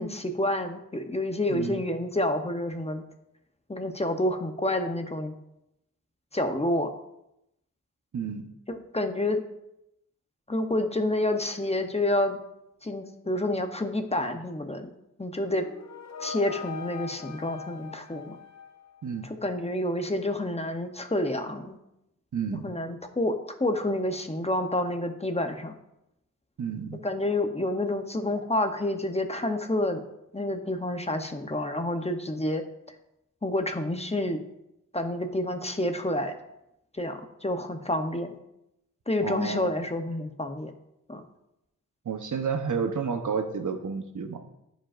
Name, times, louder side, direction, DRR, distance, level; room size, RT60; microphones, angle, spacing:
voice 1, 0.0-3.0 3.7-5.3 6.3-6.9 8.7-9.4 10.5-12.4 12.8-14.9 15.2-15.7 16.2-18.4 19.2-21.8 22.6-25.8 27.0-30.0 30.3-32.6 33.4-34.4 34.9-36.3 37.0-38.4 39.1-40.7 41.1-41.2, left 1 dB, 20° left, 6 dB, 0.8 m, -29 dB
voice 2, 1.5-1.8 8.1-8.5 19.0-19.3 22.3-22.6 26.6-27.0 39.2-39.7 42.0-44.4, right 6 dB, 70° right, 6 dB, 0.9 m, -31 dB
sound 1, 15.4-19.3, left 6 dB, 60° left, 0.8 m, -41 dB
14.5 x 5.2 x 2.5 m, 0.85 s
wide cardioid pair, 75°, 31 cm